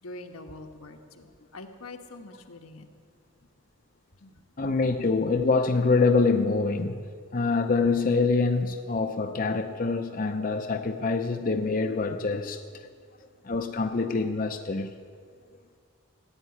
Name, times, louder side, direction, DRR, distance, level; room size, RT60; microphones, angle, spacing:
voice 1, 0.0-2.9 4.2-4.4, left 2 dB, 85° left, 4 dB, 1.4 m, -44 dB
voice 2, 4.6-7.0 7.3-12.9 13.4-14.9, left 4 dB, 40° left, 6 dB, 0.6 m, -25 dB
15.5 x 8.3 x 9.8 m, 2.1 s
head